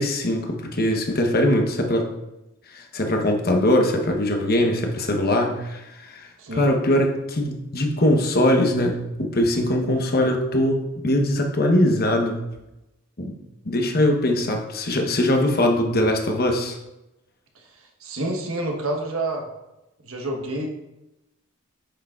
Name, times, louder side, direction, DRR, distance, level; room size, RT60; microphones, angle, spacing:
voice 1, 0.0-2.1 2.7-10.8 11.0-12.4 13.2-13.4 13.6-16.8, left 1 dB, 45° left, 3 dB, 1.0 m, -21 dB
voice 2, 6.4-6.7 18.0-19.5 20.0-20.7, right 1 dB, 75° right, 1 dB, 1.2 m, -28 dB
8.0 x 6.3 x 2.4 m, 0.96 s
head